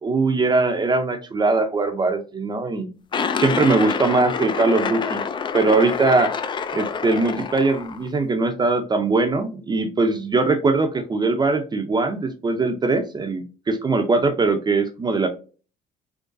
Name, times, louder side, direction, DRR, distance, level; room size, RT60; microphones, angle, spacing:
voice 1, 0.0-2.9 3.4-5.2 5.5-6.3 6.7-15.3, right 3 dB, 25° right, 6 dB, 0.5 m, -21 dB
sound 1, 3.1-8.1, left 6 dB, 30° left, 0.3 m, -27 dB
3.8 x 3.0 x 2.6 m, 0.35 s
cardioid pair, 110°, 17 cm